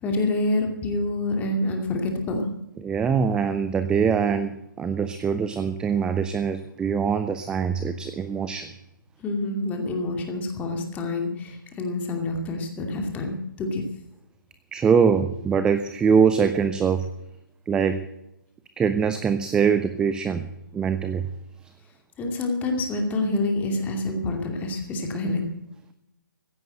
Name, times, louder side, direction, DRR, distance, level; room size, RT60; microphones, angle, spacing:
voice 1, 0.0-2.5 9.2-13.8 22.2-25.5, left 2 dB, 15° left, 3 dB, 2.5 m, -27 dB
voice 2, 2.8-8.7 14.7-17.1 17.7-18.0 18.8-20.5 20.7-21.3, right 6 dB, 5° right, 11 dB, 0.5 m, -23 dB
15.5 x 9.1 x 7.9 m, 0.85 s
figure-of-eight pair, 140°, 11 cm